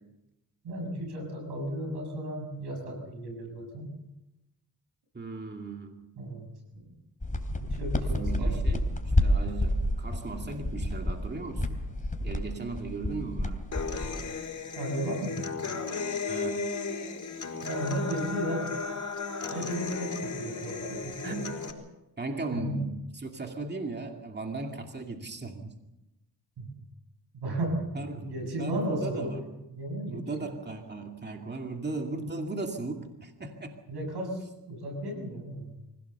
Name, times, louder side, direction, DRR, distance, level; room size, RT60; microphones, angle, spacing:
voice 1, 0.6-3.9 6.2-6.5 6.7-6.9 7.6-8.6 14.8-15.4 17.6-18.7 19.5-21.4 22.5-22.9 26.6-26.7 27.3-29.3 29.7-30.5 33.9-35.8, right 1 dB, 85° right, 3 dB, 7.2 m, -34 dB
voice 2, 5.1-6.1 8.0-11.8 12.2-13.7 16.3-16.9 21.2-21.5 22.2-25.7 27.9-28.3 28.6-29.4 30.1-33.8, right 3 dB, 25° right, 3 dB, 2.5 m, -37 dB
sound 1, 7.2-14.3, left 1 dB, 20° left, 3.2 m, -29 dB
Human voice / Acoustic guitar, 13.7-21.7, left 4 dB, 50° left, 4.5 m, -35 dB
25.0 x 17.0 x 6.9 m, 0.96 s
cardioid pair, 70°, 39 cm